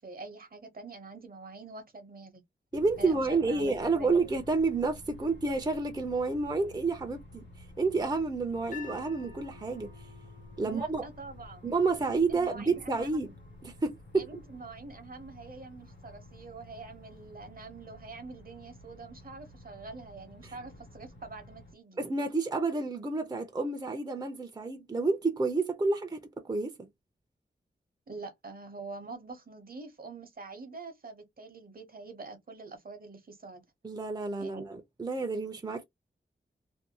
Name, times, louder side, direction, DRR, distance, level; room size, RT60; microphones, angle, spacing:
voice 1, 0.0-2.4 3.0-4.2 10.7-11.7 12.3-13.3 14.1-22.0 28.1-33.6 34.4-34.6, right 3 dB, 50° right, 0.8 m, -45 dB
sound 1, 2.7-21.7, left 1 dB, 75° left, 1.1 m, -51 dB
voice 2, 2.7-7.4 7.8-9.9 10.6-11.0 11.6-13.3 13.6-14.3 20.4-20.5 22.0-26.9 33.8-35.8, right 3 dB, 20° right, 0.5 m, -30 dB
sound 2, 8.7-14.9, left 6 dB, 45° left, 0.9 m, -53 dB
2.6 x 2.2 x 2.8 m
wide cardioid pair, 95°, 18 cm